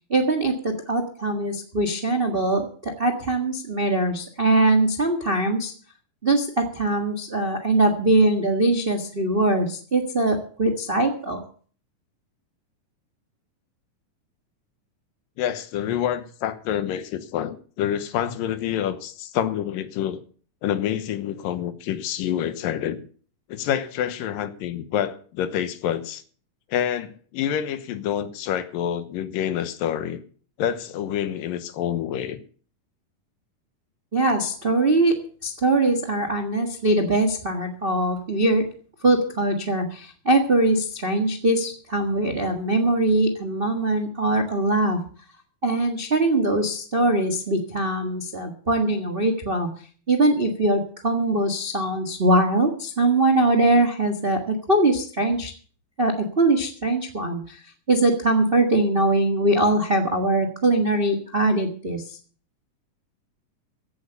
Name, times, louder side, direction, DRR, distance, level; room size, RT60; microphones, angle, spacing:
voice 1, 0.0-5.7 6.2-11.4 34.1-38.7 39.0-45.0 45.6-49.7 50.1-55.5 56.0-57.6 57.9-62.0, right 2 dB, 50° right, 0.6 m, -22 dB
voice 2, 15.4-20.2 20.6-23.0 23.5-26.2 26.7-30.2 30.6-32.4, left 10 dB, 85° left, 2.8 m, -27 dB
16.0 x 8.4 x 6.9 m
omnidirectional pair, 3.9 m